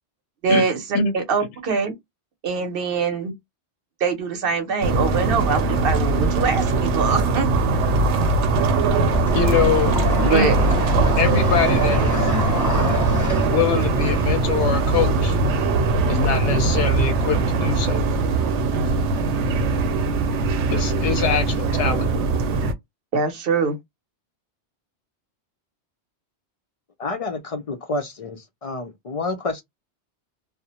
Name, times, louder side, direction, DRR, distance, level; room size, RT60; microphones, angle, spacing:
voice 1, 0.4-1.9 2.4-3.3 4.0-7.5 10.2-10.5 23.1-23.8, right 5 dB, 60° right, 0.8 m, -23 dB
sound 1, 4.8-22.7, right 3 dB, 90° right, 0.9 m, -21 dB
sound 2, 8.8-13.5, equal, 20° left, 0.8 m, -26 dB
voice 2, 9.3-9.9 10.3-10.5 11.2-12.3 13.4-15.4 16.1-18.0 20.7-22.1, left 6 dB, 85° left, 0.9 m, -23 dB
voice 3, 27.0-29.6, left 3 dB, 55° left, 0.4 m, -29 dB
2.4 x 2.0 x 2.8 m
omnidirectional pair, 1.2 m